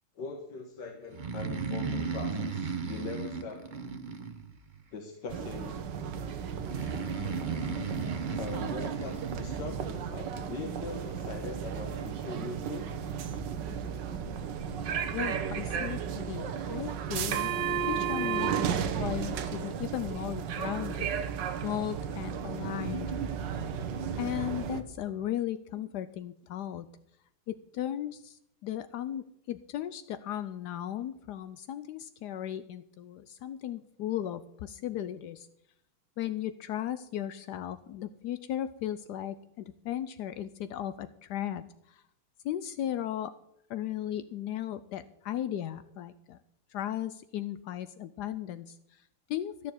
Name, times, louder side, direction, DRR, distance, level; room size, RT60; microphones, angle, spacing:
voice 1, 0.2-3.7 4.9-5.8 8.4-12.9 14.9-15.0 25.7-25.8, left 4 dB, 55° left, 3 dB, 1.8 m, -41 dB
Breathing, 1.1-4.8 6.6-9.7, right 5 dB, 35° right, 0.8 m, -35 dB
sound 1, 5.3-24.8, right 7 dB, 60° right, 1.5 m, -34 dB
voice 2, 15.1-17.5 17.9-21.1 21.6-23.2 24.2-26.9 27.5-35.5 36.2-42.0 42.4-43.4 43.7-46.4 46.7-49.7, left 11 dB, 80° left, 13 dB, 0.9 m, -36 dB
14.0 x 6.8 x 7.9 m, 0.76 s
omnidirectional pair, 2.4 m